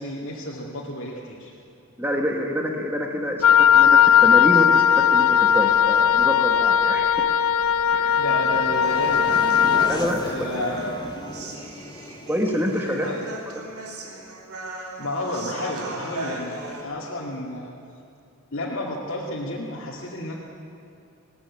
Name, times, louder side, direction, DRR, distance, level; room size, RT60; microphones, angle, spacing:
voice 1, 0.0-1.6 8.2-9.7 10.2-11.1 12.8-13.3 15.0-17.7 18.5-20.4, left 1 dB, 60° left, -5 dB, 2.5 m, -31 dB
voice 2, 2.0-7.2 7.9-8.2 9.8-10.3 12.3-13.1, equal, 10° right, 1 dB, 1.6 m, -27 dB
Wind instrument woodwind instrument, 3.4-9.9, left 8 dB, 85° left, 0.8 m, -18 dB
sound 1, 7.4-14.1, left 1 dB, 20° left, 0.8 m, -38 dB
Human voice, 8.8-16.8, right 2 dB, 85° right, 3.2 m, -37 dB
20.5 x 17.0 x 9.8 m, 2.6 s
head